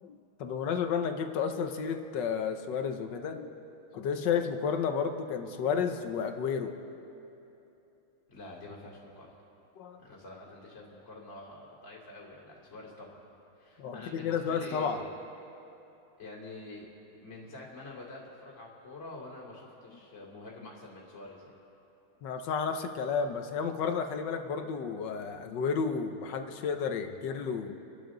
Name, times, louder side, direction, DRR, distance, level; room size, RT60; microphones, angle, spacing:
voice 1, 0.0-3.5 3.9-6.7 9.8-10.0 13.8-15.0 22.2-27.8, left 6 dB, 65° left, 6 dB, 1.5 m, -32 dB
voice 2, 8.3-9.3 10.0-13.2 13.6-15.1 16.2-16.9 17.2-21.5, left 2 dB, 35° left, -6 dB, 3.1 m, -47 dB
28.5 x 12.0 x 3.9 m, 2.9 s
omnidirectional pair, 2.3 m